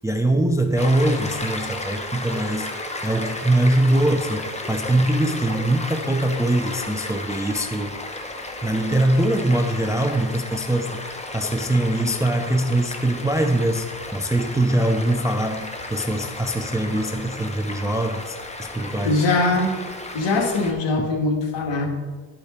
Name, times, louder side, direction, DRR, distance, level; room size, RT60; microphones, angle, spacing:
voice 1, 0.0-2.7 3.0-8.0 8.6-11.0 11.3-19.2 21.0-21.1, right 1 dB, 5° right, 6 dB, 0.5 m, -22 dB
Stream, 0.8-20.7, left 2 dB, 15° left, 1.0 m, -34 dB
voice 2, 19.0-19.8 20.1-21.9, left 2 dB, 65° left, 1 dB, 1.9 m, -21 dB
11.5 x 5.0 x 4.3 m, 1.4 s
cardioid pair, 90°, 47 cm